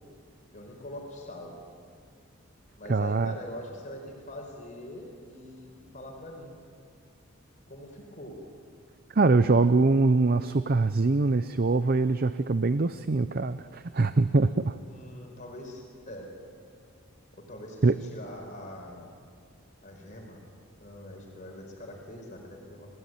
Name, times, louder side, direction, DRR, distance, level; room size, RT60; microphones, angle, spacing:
voice 1, 0.5-1.6 2.8-6.7 7.7-8.4 14.9-16.3 17.4-19.1 19.8-20.4 20.8-22.9, left 1 dB, 35° left, 1 dB, 4.7 m, -43 dB
voice 2, 2.9-3.3 9.1-14.8 17.8-17.9, right 3 dB, 45° right, 12 dB, 0.6 m, -23 dB
29.0 x 17.5 x 9.3 m, 2.2 s
head